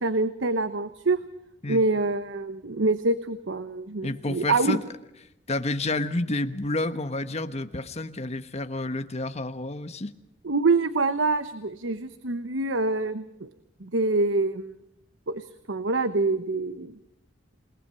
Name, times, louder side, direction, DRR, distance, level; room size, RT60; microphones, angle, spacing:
voice 1, 0.0-1.2 1.7-4.8 10.4-13.5 13.8-14.7 15.3-16.9, right 3 dB, 90° right, 12 dB, 1.0 m, -26 dB
voice 2, 4.0-4.8 5.5-10.1, left 2 dB, 35° left, 9 dB, 1.2 m, -29 dB
28.5 x 19.0 x 5.6 m, 0.89 s
head